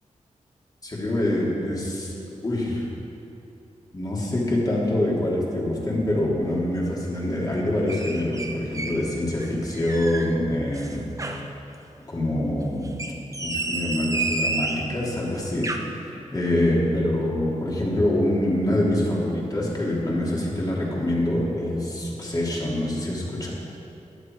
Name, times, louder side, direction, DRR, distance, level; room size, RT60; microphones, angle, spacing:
voice 1, 0.8-2.8 3.9-11.5 12.1-12.9 13.4-23.5, left 1 dB, 30° left, -4 dB, 3.2 m, -25 dB
sound 1, 7.9-9.0 9.4-10.3 10.7-11.5 12.9-14.9 15.4-15.8, right 3 dB, 25° right, 1.1 m, -30 dB
17.0 x 11.5 x 4.7 m, 2.7 s
wide cardioid pair, 110°, 13 cm